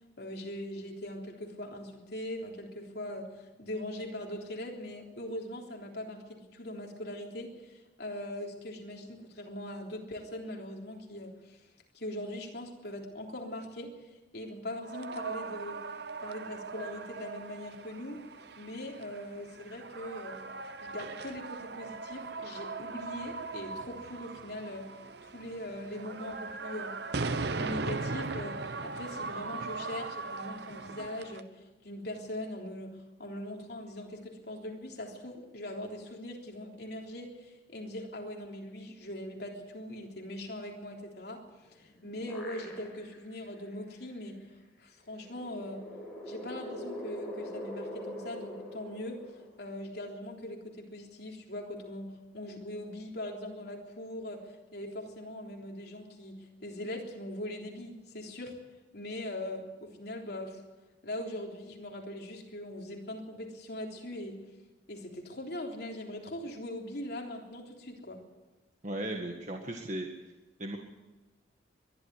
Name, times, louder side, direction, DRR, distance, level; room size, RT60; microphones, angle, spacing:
voice 1, 0.2-11.7 11.9-14.1 14.3-15.8 16.2-18.3 18.6-20.4 20.8-24.9 25.2-27.0 27.3-41.4 41.8-44.4 44.8-45.9 46.3-58.6 58.9-60.6 61.0-64.4 64.9-68.2, left 1 dB, 55° left, 0 dB, 3.5 m, -41 dB
sound 1, 14.8-31.4, right 3 dB, 55° right, 0.8 m, -39 dB
sound 2, 41.6-43.2 43.7-43.8 45.1-49.9, equal, 5° left, 5.8 m, -43 dB
voice 2, 68.8-70.1 70.6-70.8, right 1 dB, 40° right, 2 dB, 1.7 m, -36 dB
22.5 x 12.0 x 9.8 m, 1.1 s
head